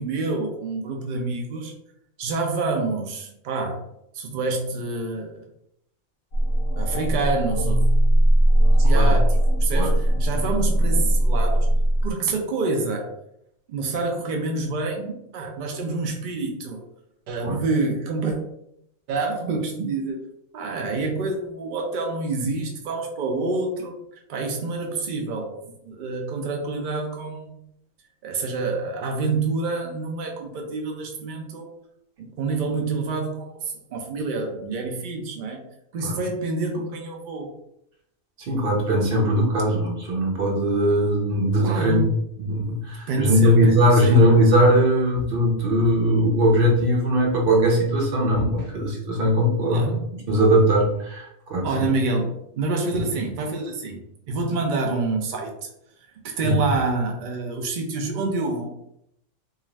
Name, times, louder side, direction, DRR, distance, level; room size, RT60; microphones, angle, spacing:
voice 1, 0.0-1.7 2.2-3.8 4.1-5.3 6.7-7.8 8.8-11.7 12.0-13.1 13.7-16.8 17.3-18.4 19.1-20.2 20.5-24.0 24.3-27.6 28.2-31.7 32.2-35.6 35.9-37.5 41.6-42.1 43.1-43.6 43.9-44.3 49.6-50.1 51.6-55.7 56.2-58.7, right 3 dB, 80° right, 2 dB, 0.4 m, -27 dB
sound 1, 6.3-12.1, right 1 dB, 60° left, 0.7 m, -19 dB
voice 2, 38.4-42.0 42.4-49.9 50.3-51.9 56.4-56.6, equal, 50° right, 0 dB, 0.8 m, -20 dB
2.4 x 2.4 x 3.1 m, 0.77 s
omnidirectional pair, 1.4 m